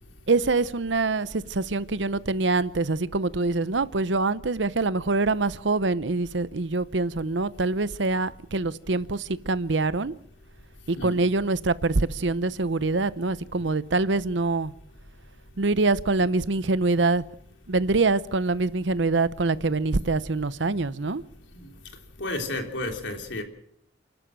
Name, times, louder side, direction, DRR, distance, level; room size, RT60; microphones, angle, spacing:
voice 1, 0.3-10.1 10.9-14.7 15.6-17.2 17.7-21.2, right 3 dB, 75° right, 0.8 m, -25 dB
voice 2, 22.2-23.4, left 2 dB, 80° left, 3.4 m, -32 dB
29.5 x 12.0 x 7.6 m
head